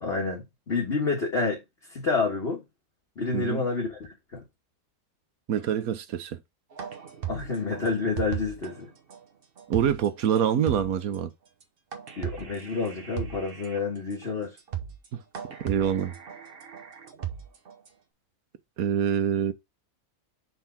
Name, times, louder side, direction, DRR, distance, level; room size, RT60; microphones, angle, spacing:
voice 1, 0.0-1.6 1.9-2.6 3.2-4.0 4.3-4.4 7.3-8.9 12.2-14.5, left 4 dB, 45° left, 1.7 m, -28 dB
voice 2, 3.3-3.6 5.5-6.4 9.7-11.3 15.1-15.2 15.6-16.1 18.8-19.5, right 9 dB, 80° right, 1.3 m, -25 dB
sound 1, 6.8-8.7 9.1-9.2 9.6-10.1 10.4-10.5 10.7-11.1 11.9-13.8 14.2-14.3 14.6-15.1 15.3-17.9, right 9 dB, 45° right, 1.0 m, -36 dB
5.5 x 3.6 x 5.8 m
omnidirectional pair, 1.5 m